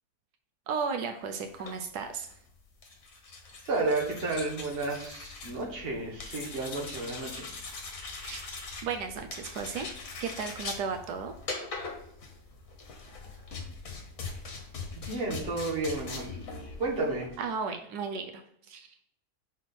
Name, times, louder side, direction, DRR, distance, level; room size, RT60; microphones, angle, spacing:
voice 1, 0.7-2.3 8.2-8.4 8.8-9.9 10.2-11.3 17.4-18.4 18.7-19.0, right 5 dB, 85° right, 5 dB, 1.2 m, -34 dB
sound 1, 1.4-17.4, left 3 dB, 60° left, 1.6 m, -42 dB
voice 2, 3.6-7.5 15.0-16.4 16.8-17.3, right 2 dB, 40° right, -2 dB, 1.6 m, -32 dB
6.0 x 4.4 x 4.1 m, 0.72 s
omnidirectional pair, 1.7 m